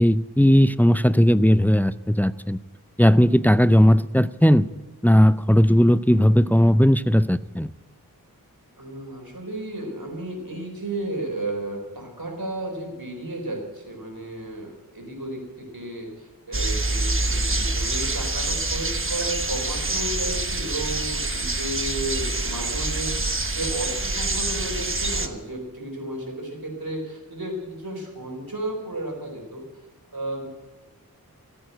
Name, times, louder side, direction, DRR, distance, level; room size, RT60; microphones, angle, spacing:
voice 1, 0.0-2.6 3.0-4.7 5.0-7.7, equal, 5° left, 15 dB, 0.4 m, -17 dB
voice 2, 8.8-29.6 30.1-30.5, right 1 dB, 80° right, 1 dB, 4.2 m, -33 dB
sound 1, 16.5-25.3, right 2 dB, 35° right, 1.2 m, -26 dB
15.0 x 8.7 x 9.2 m, 1.1 s
wide cardioid pair, 45°, 35 cm